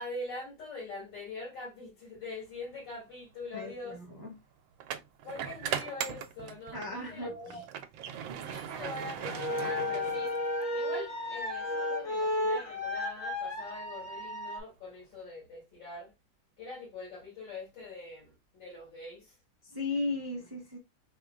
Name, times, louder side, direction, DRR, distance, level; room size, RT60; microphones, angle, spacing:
voice 1, 0.0-4.0 5.2-7.6 8.3-10.3 10.7-16.1 16.6-19.3, left 2 dB, 75° left, 2.9 m, -43 dB
sound 1, 2.7-2.9 4.8-7.0 7.4-10.6, right 9 dB, 85° right, 1.3 m, -38 dB
voice 2, 3.5-4.4 6.7-7.6 19.6-20.8, left 2 dB, 30° right, 0.4 m, -36 dB
sound 2, 9.2-14.6, left 1 dB, 40° left, 0.8 m, -33 dB
4.8 x 3.0 x 2.4 m
omnidirectional pair, 2.0 m